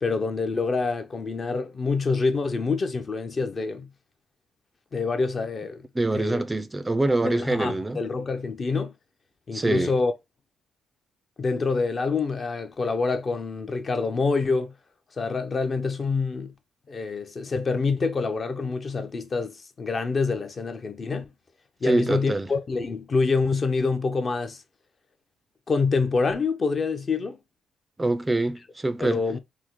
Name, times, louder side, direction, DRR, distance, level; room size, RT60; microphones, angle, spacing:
voice 1, 0.0-3.9 4.9-5.9 6.1-6.4 7.2-8.9 9.5-10.1 11.4-14.7 15.2-16.5 16.9-21.3 21.8-24.6 25.7-27.4 29.0-29.4, left 4 dB, 40° left, 0.5 m, -26 dB
voice 2, 5.9-8.0 9.5-9.9 21.8-22.5 28.0-29.2, right 2 dB, 15° right, 0.3 m, -25 dB
3.5 x 2.0 x 3.0 m
cardioid pair, 90°, 0 cm